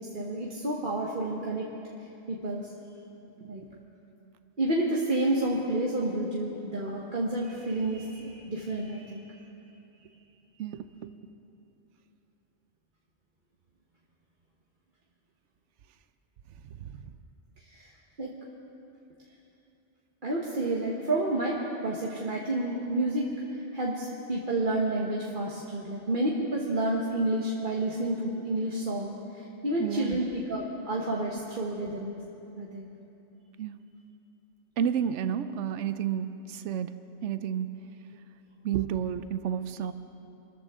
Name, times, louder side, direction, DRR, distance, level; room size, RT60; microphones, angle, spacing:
voice 1, 0.1-1.7 2.3-2.7 3.5-3.6 4.6-9.2 17.7-17.9 18.2-18.3 20.2-23.3 23.7-32.1 32.6-32.9, right 1 dB, 45° right, -3 dB, 1.4 m, -30 dB
voice 2, 16.8-17.1 29.8-30.2 33.6-33.8 34.8-36.9 37.2-37.8 38.6-39.9, right 9 dB, 80° right, 11 dB, 0.9 m, -31 dB
26.0 x 14.0 x 3.7 m, 2.9 s
omnidirectional pair, 1.2 m